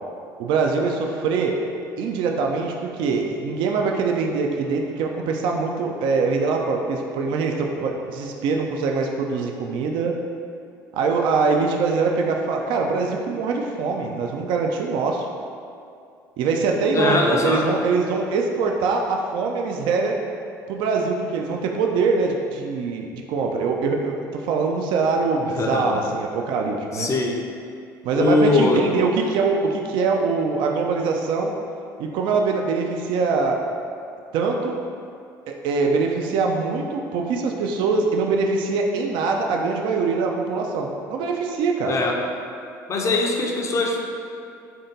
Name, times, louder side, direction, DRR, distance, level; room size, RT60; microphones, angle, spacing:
voice 1, 0.4-1.6 2.0-10.2 10.9-15.3 16.4-20.2 20.7-27.1 28.0-31.5 32.0-33.6 34.3-34.8 35.5-41.9, right 4 dB, 55° right, 1 dB, 0.3 m, -23 dB
voice 2, 16.9-17.7 25.5-26.1 26.9-27.4 28.1-28.9 41.9-42.2 42.9-44.0, left 3 dB, 30° left, 1 dB, 0.5 m, -21 dB
3.4 x 2.6 x 3.9 m, 2.4 s
figure-of-eight pair, 60°, 10 cm